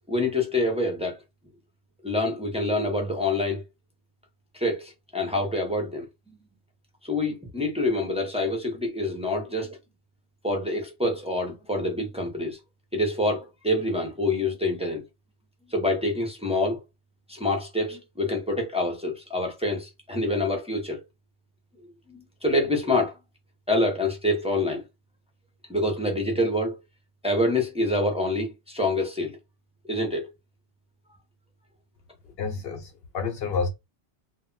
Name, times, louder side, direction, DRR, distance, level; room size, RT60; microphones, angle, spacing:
voice 1, 0.1-1.2 2.0-3.6 4.5-6.4 7.0-9.8 10.4-12.6 12.9-15.0 15.7-16.8 17.3-21.0 22.1-23.2 23.7-24.8 25.7-26.8 27.2-29.4 29.9-30.3, left 1 dB, 10° right, 0.4 m, -26 dB
voice 2, 32.2-33.7, left 5 dB, 65° left, 0.8 m, -30 dB
2.2 x 2.0 x 3.7 m
omnidirectional pair, 1.2 m